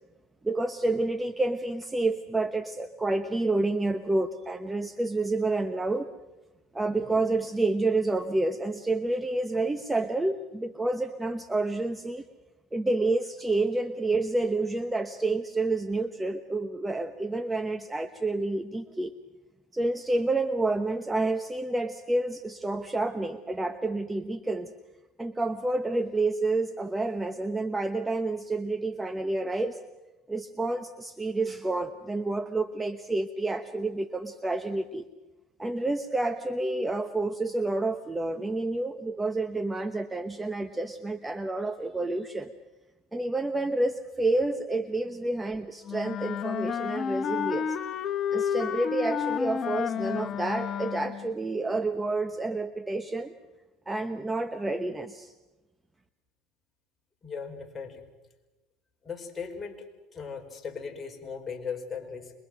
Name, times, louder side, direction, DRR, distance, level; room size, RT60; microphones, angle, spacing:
voice 1, 0.4-6.1 6.7-12.2 12.7-19.1 19.7-24.7 25.2-29.8 30.3-35.0 35.6-42.5 43.1-47.8 48.3-53.3 53.9-55.3, right 2 dB, 10° right, 10 dB, 1.1 m, -29 dB
Wind instrument woodwind instrument, 45.9-51.3, left 8 dB, 40° left, 1.2 m, -31 dB
voice 2, 57.2-58.0 59.0-59.9 60.1-62.3, left 5 dB, 25° left, 2 dB, 4.7 m, -38 dB
26.5 x 23.0 x 6.2 m, 1.1 s
supercardioid pair, 100°, 0 cm